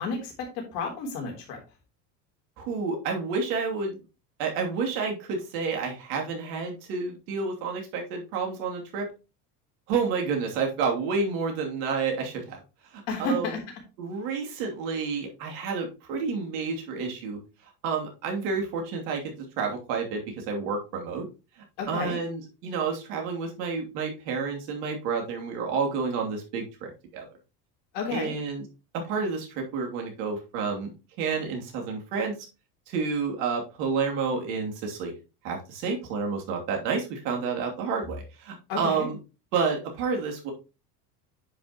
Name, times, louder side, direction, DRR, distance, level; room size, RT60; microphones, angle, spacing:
voice 1, 0.0-1.6 13.1-13.6 21.8-22.2 27.9-28.3 38.7-39.1, left 3 dB, 70° left, 1 dB, 3.5 m, -31 dB
voice 2, 2.6-4.0 4.4-9.1 9.9-12.6 12.9-13.6 14.0-17.4 17.8-21.3 21.9-27.3 28.1-28.6 28.9-30.9 31.2-32.4 32.9-35.1 35.4-39.2 39.5-40.5, right 5 dB, 70° right, 2 dB, 2.8 m, -30 dB
9.6 x 5.5 x 2.9 m, 0.30 s
hypercardioid pair, 90°, 49 cm